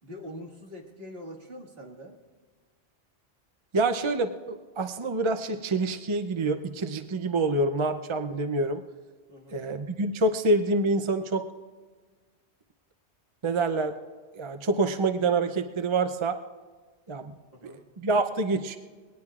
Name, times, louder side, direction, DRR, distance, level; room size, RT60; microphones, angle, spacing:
voice 1, 0.0-2.2 9.3-9.6 17.5-17.8, equal, 55° right, 0 dB, 2.2 m, -43 dB
voice 2, 3.7-8.8 9.5-11.5 13.4-13.9 14.3-16.4 17.1-17.3 17.6-17.7 18.0-18.8, right 2 dB, 35° right, 7 dB, 0.5 m, -26 dB
21.5 x 18.5 x 2.4 m, 1.4 s
omnidirectional pair, 1.2 m